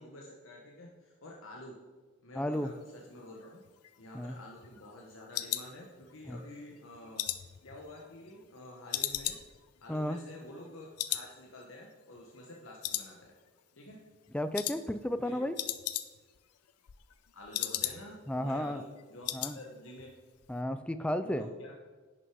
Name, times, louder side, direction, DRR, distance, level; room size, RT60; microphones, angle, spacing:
voice 1, 0.0-1.8 2.2-3.6 4.0-7.3 7.6-9.4 9.8-13.3 13.8-14.0 15.1-15.4 17.3-20.1 21.2-21.7, left 1 dB, 60° left, -1 dB, 1.1 m, -49 dB
voice 2, 2.4-2.7 4.1-4.4 6.3-6.4 9.9-10.2 14.3-15.6 18.3-18.8 19.3-19.6 20.5-21.5, left 1 dB, 5° left, 11 dB, 0.3 m, -33 dB
sound 1, 3.6-6.4 6.8-8.5 8.9-10.7 11.0-11.3 11.6-11.7 12.2-12.6 12.8-13.6 13.9-14.2 14.5-14.8 15.1-15.2 15.4-16.4 16.7-18.3 18.6-18.7 19.0-19.6 19.9-20.1 20.4-20.5, left 13 dB, 85° left, 0.6 m, -37 dB
10.5 x 6.2 x 4.7 m, 1.3 s
head